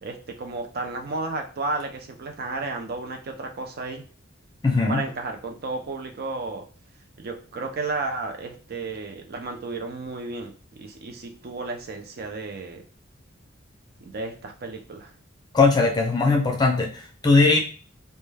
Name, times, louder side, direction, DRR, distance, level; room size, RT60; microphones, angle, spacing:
voice 1, 0.0-4.0 4.9-6.6 7.2-12.8 14.0-15.1, right 3 dB, 50° right, 4 dB, 0.5 m, -33 dB
voice 2, 4.6-5.1 15.5-17.6, left 3 dB, 20° left, 1 dB, 0.4 m, -19 dB
2.2 x 2.2 x 3.2 m, 0.38 s
head